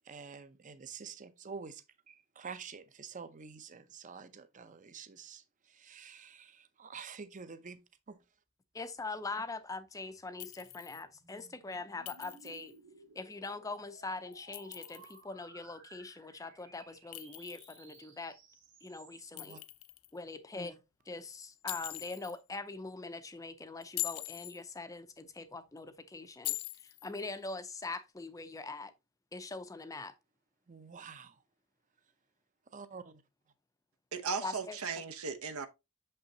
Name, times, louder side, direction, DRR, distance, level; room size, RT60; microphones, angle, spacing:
voice 1, 0.0-7.8 8.1-8.2 19.3-19.6 30.7-31.4 32.7-33.2, right 5 dB, 35° right, 0.6 m, -48 dB
voice 2, 8.7-12.7 13.2-18.4 18.8-19.6 20.1-20.8 21.1-28.9 29.3-30.1 34.4-34.8, left 3 dB, 15° left, 0.5 m, -42 dB
sound 1, 10.0-19.7, right 3 dB, 55° right, 2.2 m, -59 dB
Chink clink, 10.4-11.0 12.1-12.7 14.3-15.2 17.1-18.0 19.4-20.1 21.7-22.4 23.8-24.6 26.4-27.1, left 19 dB, 75° left, 0.4 m, -42 dB
voice 3, 34.1-35.7, right 5 dB, 80° right, 0.9 m, -37 dB
6.6 x 5.6 x 2.7 m
head